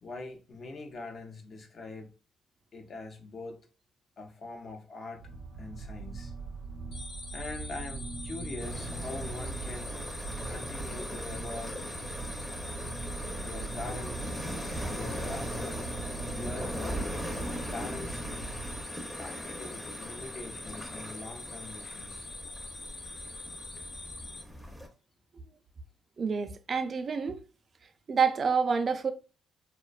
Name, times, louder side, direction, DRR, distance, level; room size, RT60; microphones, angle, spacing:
voice 1, 0.0-2.1 2.7-3.7 4.2-5.3 5.6-6.3 7.3-10.0 10.4-11.9 13.4-14.3 14.9-15.9 16.3-17.1 17.6-18.5 19.2-22.3, left 3 dB, 50° left, 0.6 m, -43 dB
sound 1, 5.2-18.8, right 4 dB, 90° right, 0.6 m, -41 dB
sound 2, 6.9-24.4, left 2 dB, 85° left, 1.0 m, -44 dB
sound 3, 8.6-24.9, equal, 5° left, 0.6 m, -40 dB
voice 2, 26.2-27.4 28.1-29.1, right 5 dB, 45° right, 0.3 m, -28 dB
2.5 x 2.1 x 2.3 m
cardioid pair, 90°, 0 cm